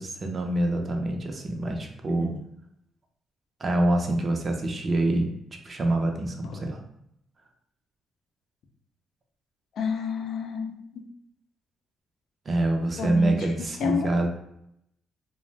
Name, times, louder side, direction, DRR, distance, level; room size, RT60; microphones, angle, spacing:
voice 1, 0.0-2.3 3.6-5.3 5.6-6.8 12.5-14.3, right 1 dB, 40° right, 3 dB, 0.5 m, -26 dB
voice 2, 9.7-11.0 13.0-13.5 13.8-14.1, left 5 dB, 70° left, 3 dB, 0.4 m, -30 dB
2.5 x 2.0 x 3.2 m, 0.77 s
cardioid pair, 90°, 0 cm